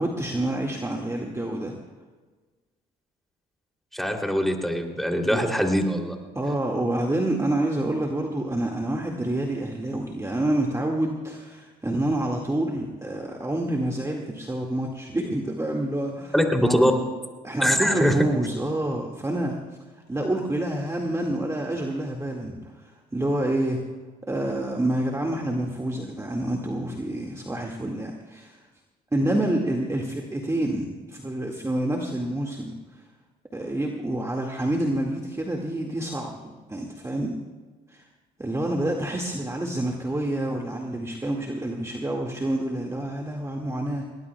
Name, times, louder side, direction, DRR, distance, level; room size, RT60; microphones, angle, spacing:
voice 1, 0.0-1.7 5.3-5.4 6.4-16.9 17.4-19.6 20.1-23.8 24.3-28.6 29.1-32.8 33.5-36.4 36.7-37.4 37.9-38.0 38.4-44.0, right 1 dB, 15° right, 0 dB, 2.0 m, -28 dB
voice 2, 3.9-6.1 16.3-16.9 17.6-18.1, equal, ahead, 3 dB, 3.0 m, -22 dB
22.0 x 19.0 x 2.3 m, 1.3 s
hypercardioid pair, 60°, 20 cm